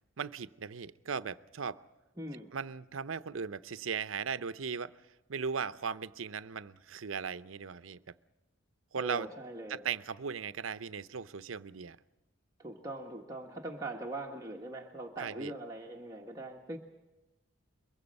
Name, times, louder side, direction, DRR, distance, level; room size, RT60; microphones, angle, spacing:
voice 1, 0.2-1.8 2.5-4.9 5.3-8.0 8.9-9.3 9.7-12.0 15.2-15.5, right 6 dB, 90° right, 14 dB, 0.7 m, -37 dB
voice 2, 2.2-2.5 8.9-9.8 12.6-16.8, right 2 dB, 20° right, -1 dB, 1.3 m, -41 dB
23.0 x 22.5 x 5.4 m, 1.0 s
head